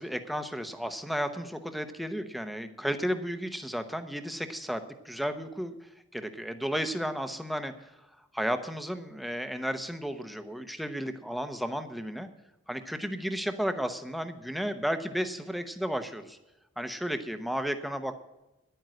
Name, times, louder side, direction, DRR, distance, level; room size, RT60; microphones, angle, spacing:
voice 1, 0.0-7.9 8.3-12.3 12.7-16.4 16.8-18.2, equal, ahead, 8 dB, 0.8 m, -33 dB
11.0 x 9.2 x 7.6 m, 0.97 s
head